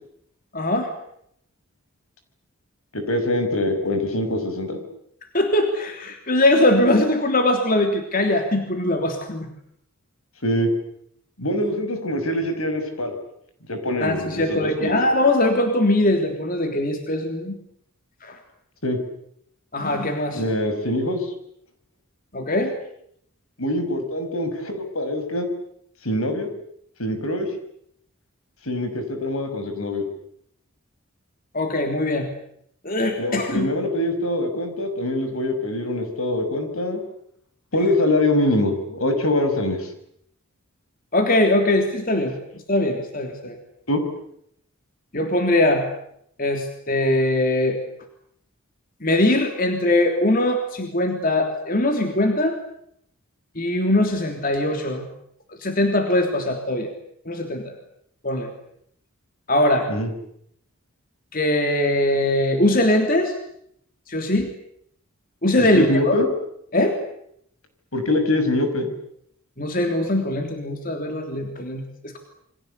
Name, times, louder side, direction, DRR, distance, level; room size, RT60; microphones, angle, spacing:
voice 1, 0.5-0.9 5.3-9.5 14.0-17.6 18.2-18.4 19.7-20.4 22.3-22.7 31.5-32.3 32.8-33.7 41.1-42.4 42.7-43.6 45.1-45.8 46.4-47.8 49.0-52.6 53.5-55.1 55.6-56.9 57.2-57.7 58.2-58.5 59.5-59.9 61.3-63.3 64.1-64.5 65.4-66.2 66.7-67.0 69.6-72.2, left 1 dB, 40° left, 4 dB, 3.3 m, -21 dB
voice 2, 2.9-4.8 10.4-10.7 11.4-13.2 13.7-14.9 18.8-19.0 20.3-21.3 23.6-25.5 26.0-26.5 27.0-27.5 28.7-30.0 33.2-37.0 37.7-39.9 43.9-44.0 59.9-60.1 65.7-66.3 67.9-68.9, left 1 dB, 75° left, 7 dB, 6.2 m, -24 dB
28.5 x 24.0 x 8.3 m, 0.71 s
head